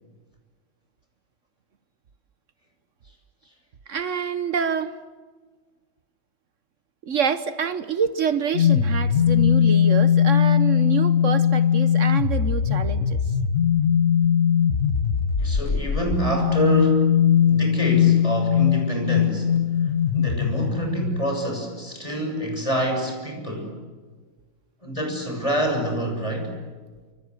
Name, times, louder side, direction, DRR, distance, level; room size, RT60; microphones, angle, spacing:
voice 1, 3.9-4.9 7.0-13.2, right 6 dB, 70° right, 1.4 m, -27 dB
sound 1, 8.5-21.4, left 8 dB, 60° left, 1.5 m, -20 dB
voice 2, 15.4-17.2 17.5-23.8 24.8-26.5, equal, 25° left, 6.8 m, -27 dB
28.0 x 26.0 x 8.0 m
omnidirectional pair, 1.4 m